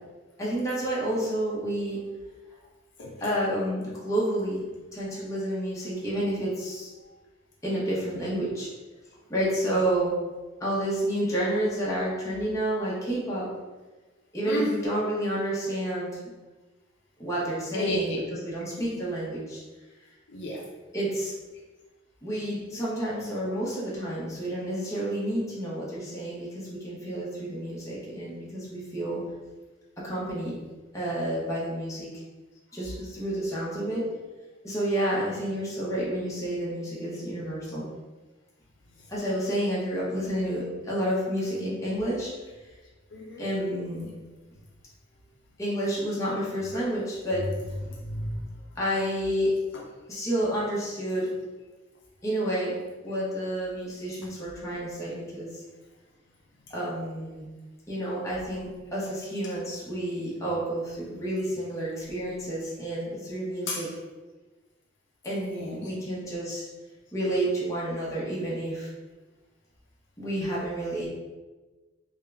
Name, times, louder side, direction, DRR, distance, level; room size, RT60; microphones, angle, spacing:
voice 1, 0.4-2.0 3.2-4.7 4.9-6.9 7.6-8.7 9.3-10.1 10.6-13.5 14.3-16.2 17.2-19.6 20.9-21.3 22.2-29.2 30.0-30.5 30.9-32.1 32.7-34.0 34.6-37.9 39.1-42.3 43.4-44.1 45.6-47.7 48.8-49.5 50.1-51.3 52.2-52.7 53.0-55.6 56.7-57.5 57.9-63.9 65.2-66.6 67.1-68.9 70.2-71.1, right 1 dB, 15° left, -7 dB, 1.0 m, -30 dB
voice 2, 14.4-14.8 17.7-18.2 18.8-19.0 20.3-20.7 43.1-43.5 47.8-48.5 49.7-49.8 63.7-63.9 65.5-65.9, left 1 dB, 65° left, -2 dB, 0.5 m, -32 dB
3.6 x 2.2 x 3.3 m, 1.2 s
head